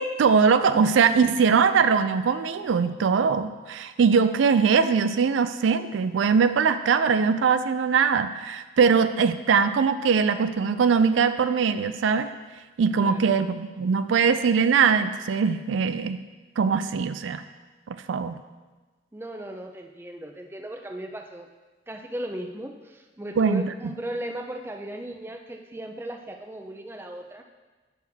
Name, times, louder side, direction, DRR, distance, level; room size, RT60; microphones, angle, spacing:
voice 1, 0.0-12.3 12.8-16.2 16.6-17.4 17.9-18.4 23.4-23.7, right 6 dB, 85° right, 11 dB, 0.4 m, -21 dB
voice 2, 19.1-21.5 21.9-27.4, right 1 dB, 10° right, 4 dB, 0.4 m, -37 dB
8.4 x 6.4 x 3.5 m, 1.3 s
head